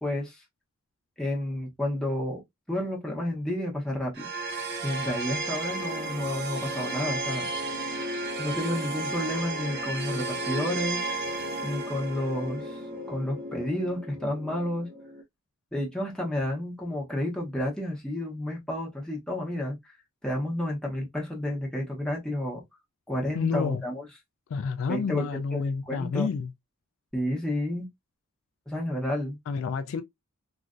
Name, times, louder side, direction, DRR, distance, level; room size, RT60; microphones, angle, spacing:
voice 1, 0.0-0.4 1.2-2.4 2.7-4.3 4.8-7.5 8.4-11.0 11.6-14.9 15.7-19.9 20.2-22.6 23.1-24.1 24.9-25.3 25.5-25.6 25.9-26.3 27.1-27.9 28.7-29.4, left 1 dB, 5° left, 1.0 m, -31 dB
sound 1, 4.1-15.2, right 2 dB, 50° right, 0.7 m, -33 dB
voice 2, 23.3-23.8 24.5-26.5 29.5-30.0, left 5 dB, 65° left, 0.3 m, -29 dB
3.1 x 2.4 x 2.5 m
head